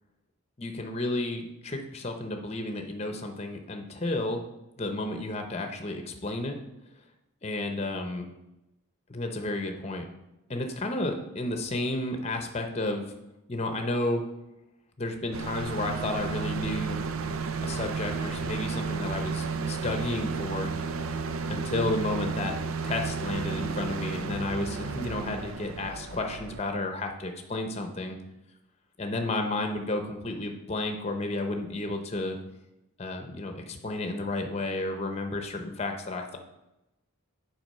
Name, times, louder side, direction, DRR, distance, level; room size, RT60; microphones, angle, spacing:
voice 1, 0.6-4.4 4.8-6.5 7.4-8.3 9.1-10.0 10.5-13.1 13.5-14.2 15.0-17.0 17.6-20.7 21.5-22.6 22.8-28.2 29.0-32.4 33.0-36.4, left 2 dB, 30° left, 5 dB, 0.8 m, -32 dB
sound 1, 15.3-26.6, right 5 dB, 75° right, 0.5 m, -33 dB
7.8 x 4.7 x 5.4 m, 0.92 s
head